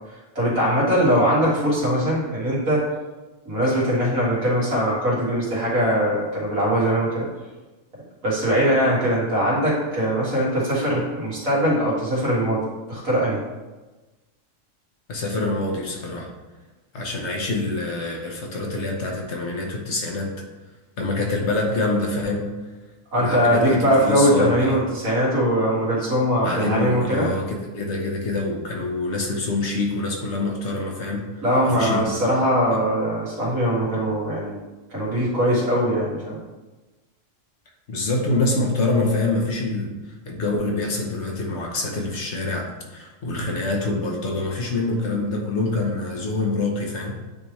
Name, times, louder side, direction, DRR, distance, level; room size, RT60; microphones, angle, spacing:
voice 1, 0.4-2.8 3.5-7.3 8.2-12.6 12.9-13.4 23.1-27.3 31.4-34.6 34.9-36.4, equal, 85° right, -6 dB, 2.3 m, -21 dB
voice 2, 15.1-16.3 16.9-20.3 21.0-22.5 23.1-24.8 26.4-31.2 31.6-32.3 37.9-39.9 40.2-47.2, left 2 dB, 60° left, 1 dB, 1.2 m, -26 dB
9.2 x 3.3 x 3.1 m, 1.2 s
omnidirectional pair, 1.4 m